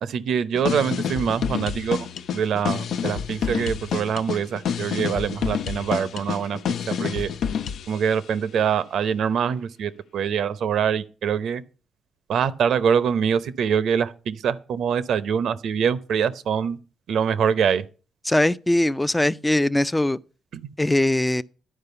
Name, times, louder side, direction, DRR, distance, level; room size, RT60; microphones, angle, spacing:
voice 1, 0.0-2.1 2.3-6.6 6.9-7.3 7.9-11.6 12.3-16.8 17.1-17.8 20.5-20.6, right 7 dB, 70° right, 0.7 m, -24 dB
sound 1, 0.5-8.0, left 7 dB, 70° left, 0.5 m, -28 dB
voice 2, 18.3-20.2 20.8-21.4, left 1 dB, 10° left, 0.4 m, -21 dB
11.0 x 4.8 x 6.8 m
cardioid pair, 90°, 0 cm